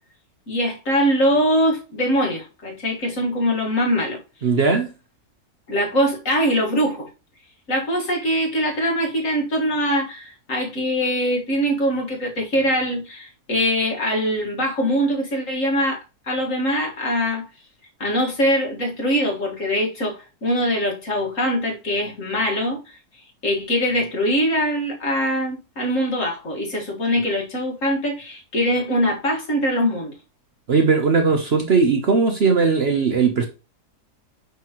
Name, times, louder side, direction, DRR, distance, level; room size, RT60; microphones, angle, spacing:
voice 1, 0.5-4.2 5.7-7.1 7.7-16.0 16.3-17.5 18.0-23.0 23.4-30.1, equal, 55° left, 2.1 m, -22 dB
voice 2, 4.4-4.9 30.7-33.5, right 4 dB, 50° right, 0.9 m, -18 dB
5.8 x 5.8 x 3.0 m
omnidirectional pair, 1.6 m